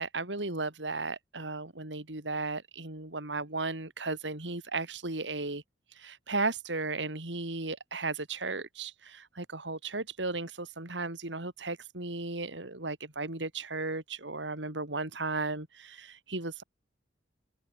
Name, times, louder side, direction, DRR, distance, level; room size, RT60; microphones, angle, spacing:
voice 1, 0.0-5.6 5.9-16.6, right 3 dB, 75° right, 3.5 m, -35 dB
head